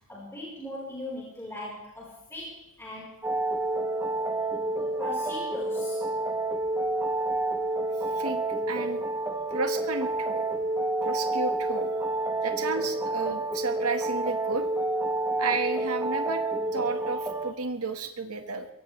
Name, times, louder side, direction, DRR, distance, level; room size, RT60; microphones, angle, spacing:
voice 1, 0.1-3.2 5.0-6.0, left 1 dB, 10° left, -6 dB, 4.4 m, -39 dB
sound 1, 3.2-17.5, right 2 dB, 10° right, 1.1 m, -29 dB
voice 2, 8.0-9.0 9.5-10.5 11.0-11.9 12.4-14.7 15.4-16.4 16.7-18.7, right 4 dB, 90° right, 6 dB, 1.5 m, -32 dB
23.0 x 16.5 x 3.3 m, 0.90 s
head